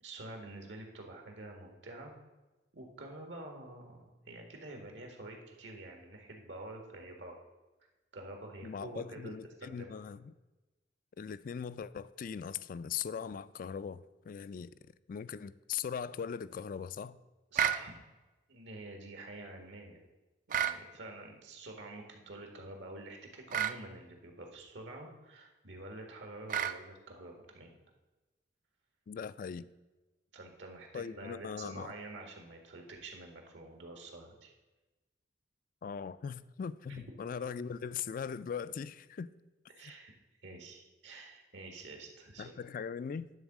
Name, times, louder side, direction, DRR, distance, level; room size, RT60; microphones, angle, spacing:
voice 1, 0.0-2.1 2.7-7.4 8.1-9.3 9.6-10.0 17.5-18.0 18.5-20.0 20.5-27.7 30.3-34.5 36.9-37.0 39.7-40.1 40.4-42.5, right 2 dB, 80° right, 3 dB, 1.8 m, -48 dB
voice 2, 8.6-10.3 11.2-14.7 15.1-17.2 29.1-29.6 30.9-31.9 35.8-39.3 42.4-43.3, left 7 dB, 50° left, 16 dB, 0.3 m, -40 dB
sound 1, 17.6-17.8 20.5-20.8 23.5-23.8 26.5-26.8, right 9 dB, 45° right, 0.4 m, -30 dB
10.5 x 3.9 x 7.3 m, 1.1 s
head